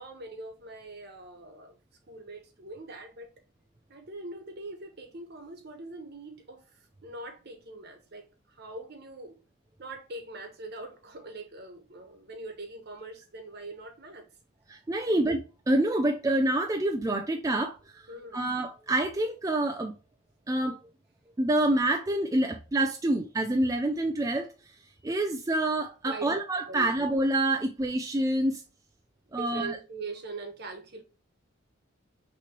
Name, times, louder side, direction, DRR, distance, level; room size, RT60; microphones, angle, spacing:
voice 1, 0.0-1.8 2.1-3.3 3.9-9.3 9.8-14.2 15.0-15.2 18.1-18.4 26.1-26.9 29.3-31.0, right 2 dB, 55° right, 1.2 m, -42 dB
voice 2, 14.7-15.4 15.7-18.1 18.3-19.9 20.5-20.8 21.4-24.5 25.0-28.6 29.3-29.8, right 1 dB, 15° right, 0.3 m, -27 dB
5.8 x 3.1 x 2.9 m
head